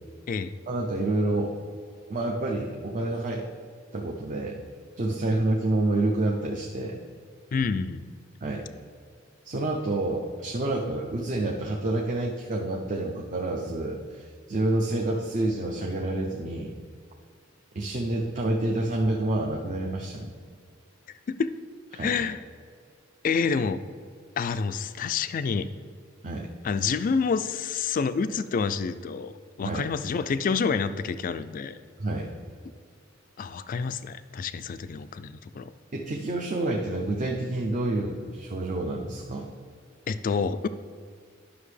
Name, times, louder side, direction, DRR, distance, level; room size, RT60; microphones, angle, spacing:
voice 1, 0.7-1.5 2.1-3.4 3.9-4.6 5.0-7.0 8.4-8.7 9.4-16.7 17.7-20.3 21.9-22.2 26.2-26.5 29.6-29.9 32.0-32.3 35.9-39.5, right 2 dB, 40° right, 0 dB, 0.6 m, -28 dB
voice 2, 7.5-8.1 21.3-21.5 22.0-22.4 23.2-23.8 24.4-25.7 26.6-29.3 29.6-31.8 33.4-35.7 40.1-40.7, left 5 dB, 40° left, 12 dB, 0.3 m, -28 dB
11.0 x 5.9 x 3.3 m, 2.1 s
head